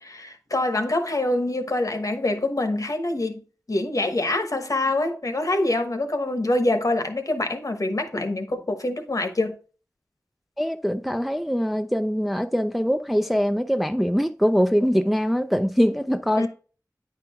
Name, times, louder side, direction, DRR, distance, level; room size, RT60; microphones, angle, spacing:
voice 1, 0.0-3.4 3.7-9.6 16.4-16.5, left 2 dB, 55° left, 1.0 m, -25 dB
voice 2, 10.6-16.5, equal, ahead, 0.4 m, -23 dB
8.9 x 4.5 x 3.5 m
wide cardioid pair, 45°, 7 cm